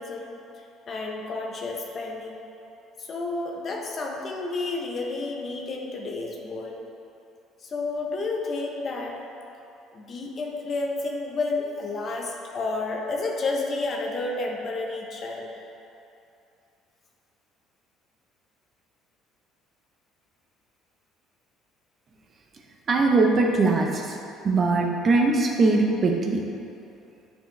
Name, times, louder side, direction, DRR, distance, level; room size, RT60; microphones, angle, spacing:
voice 1, 0.0-2.5 3.0-6.9 7.6-9.2 9.9-15.6, left 3 dB, 45° left, 0 dB, 1.1 m, -31 dB
voice 2, 22.9-24.2 24.4-26.4, right 3 dB, 40° right, 1 dB, 0.9 m, -21 dB
8.9 x 5.0 x 3.4 m, 2.8 s
supercardioid pair, 75°, 0 cm